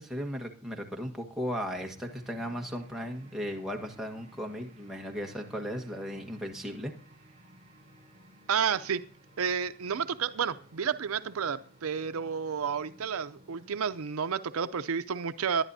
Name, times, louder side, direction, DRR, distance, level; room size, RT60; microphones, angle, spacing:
voice 1, 0.0-6.9, equal, ahead, 1 dB, 1.4 m, -36 dB
sound 1, 1.8-14.0, right 1 dB, 30° right, 4.6 m, -56 dB
voice 2, 8.5-9.0 9.4-15.6, right 7 dB, 80° right, 12 dB, 0.5 m, -31 dB
20.0 x 11.0 x 2.7 m, 0.41 s
head